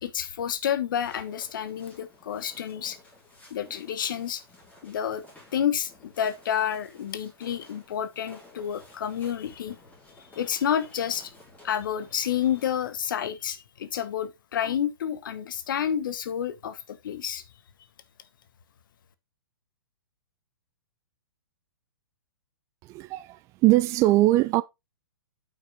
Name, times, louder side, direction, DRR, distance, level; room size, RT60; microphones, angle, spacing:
voice 1, 0.0-3.0 3.5-4.4 4.8-5.2 5.5-9.8 10.3-11.3 11.6-17.4, left 9 dB, 55° left, 1.2 m, -29 dB
sound 1, 1.0-12.9, left 1 dB, 10° left, 4.5 m, -54 dB
voice 2, 22.8-24.6, right 17 dB, 25° right, 0.4 m, -21 dB
8.4 x 5.7 x 3.7 m
figure-of-eight pair, 115°, 13 cm